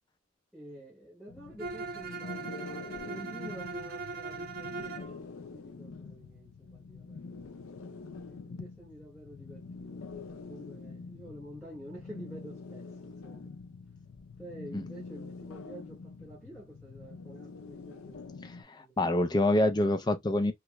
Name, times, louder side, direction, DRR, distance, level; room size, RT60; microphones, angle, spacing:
voice 1, 0.5-7.5 8.0-13.5 14.4-18.9, right 1 dB, ahead, 1.0 m, -49 dB
sound 1, 1.3-18.6, left 4 dB, 90° left, 0.5 m, -45 dB
Bowed string instrument, 1.6-5.1, right 4 dB, 50° right, 0.9 m, -40 dB
voice 2, 18.4-20.5, left 1 dB, 20° left, 0.4 m, -27 dB
3.1 x 2.4 x 2.9 m
head